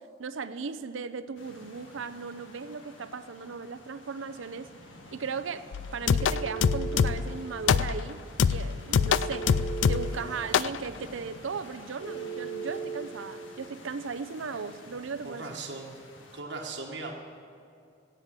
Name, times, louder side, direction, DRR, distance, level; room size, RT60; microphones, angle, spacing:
voice 1, 0.2-4.7 5.1-5.7 5.9-8.2 8.5-9.5 9.9-15.5, right 5 dB, 90° right, 11 dB, 0.6 m, -37 dB
sound 1, 1.4-16.4, left 2 dB, 90° left, 1.8 m, -50 dB
sound 2, 5.7-7.4 7.7-8.1 8.4-10.2 10.5-10.8, left 7 dB, 70° left, 0.3 m, -25 dB
Telephone, 6.1-7.1 9.0-10.1 12.0-13.0, right 6 dB, 25° left, 4.1 m, -36 dB
voice 2, 10.1-10.6 15.2-16.0 16.3-17.1, right 3 dB, 65° right, 0 dB, 1.3 m, -39 dB
17.0 x 7.7 x 7.5 m, 2.5 s
head